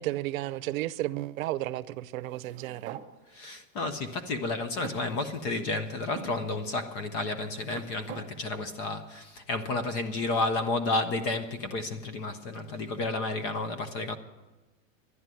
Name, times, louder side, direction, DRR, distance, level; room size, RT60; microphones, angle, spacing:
voice 1, 0.0-3.0, right 16 dB, 85° right, 0.7 m, -33 dB
sound 1, 2.2-3.1 3.9-4.0 4.8-5.7 6.2-6.4 7.2-8.3, right 8 dB, 20° right, 0.6 m, -45 dB
voice 2, 3.3-14.2, left 2 dB, 20° left, 0.4 m, -31 dB
11.0 x 11.0 x 9.0 m
supercardioid pair, 180°, 40 cm